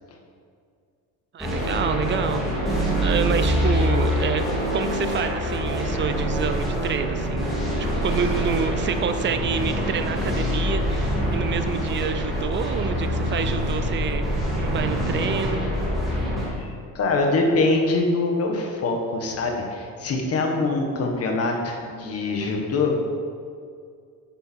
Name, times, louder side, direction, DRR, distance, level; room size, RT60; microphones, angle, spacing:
voice 1, 1.3-4.4 4.7-7.5 7.8-14.2 14.5-15.6, right 6 dB, 30° right, 9 dB, 0.6 m, -28 dB
sound 1, 1.4-16.4, equal, ahead, 3.1 m, -25 dB
voice 2, 16.4-23.1, left 3 dB, 40° left, 1 dB, 1.6 m, -24 dB
10.0 x 9.5 x 4.6 m, 2.2 s
cardioid pair, 170°, 36 cm